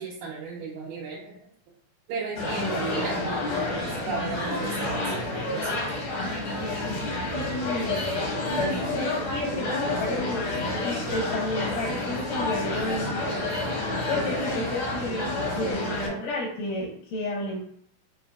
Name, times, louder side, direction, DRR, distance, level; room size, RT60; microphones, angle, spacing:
voice 1, 0.0-1.4 2.1-6.0 6.7-6.8 7.3-7.4 7.8-8.4 9.5-9.8 13.2-13.8 14.2-14.8 15.2-15.4 15.8-16.3, right 4 dB, 85° right, -4 dB, 2.3 m, -36 dB
sound 1, 2.3-16.1, left 2 dB, 65° left, 1.3 m, -29 dB
voice 2, 7.3-8.0 8.5-10.5 10.8-13.5 14.1-17.6, left 1 dB, 85° left, -3 dB, 2.4 m, -32 dB
5.8 x 2.5 x 2.3 m, 0.66 s
omnidirectional pair, 3.7 m